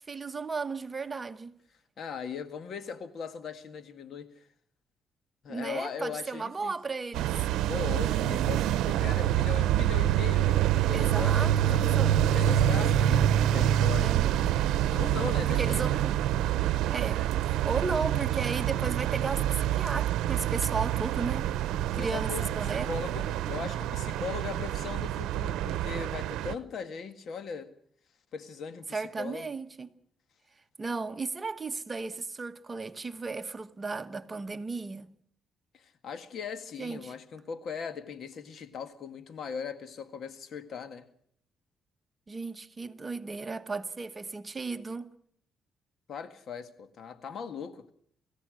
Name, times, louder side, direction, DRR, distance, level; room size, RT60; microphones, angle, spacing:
voice 1, 0.1-1.5 5.5-7.3 10.9-12.2 14.0-14.3 15.5-16.1 16.9-21.5 22.0-22.9 28.9-29.9 30.8-35.1 36.8-37.1 42.3-45.1, right 4 dB, 25° right, 1.2 m, -35 dB
voice 2, 2.0-4.5 5.4-6.7 7.7-11.8 12.3-14.2 14.9-16.0 21.9-27.7 28.3-29.5 35.7-41.1 46.1-47.9, left 6 dB, 60° left, 1.8 m, -39 dB
sound 1, 7.1-26.5, right 11 dB, 90° right, 0.8 m, -26 dB
28.0 x 15.5 x 6.4 m
cardioid pair, 90°, 0 cm